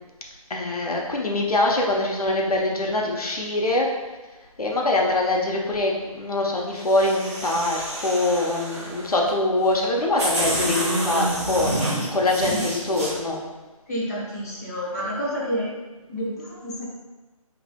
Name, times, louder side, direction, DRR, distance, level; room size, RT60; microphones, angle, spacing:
voice 1, 0.5-3.9 4.6-13.4, left 2 dB, 85° left, -1 dB, 1.0 m, -23 dB
sound 1, 6.8-9.1 9.8-9.9 10.2-13.1, right 1 dB, 25° right, 1.0 m, -28 dB
voice 2, 13.9-15.7 16.1-16.8, equal, 25° left, -7 dB, 1.0 m, -29 dB
6.9 x 3.2 x 2.3 m, 1.2 s
hypercardioid pair, 175°, 19 cm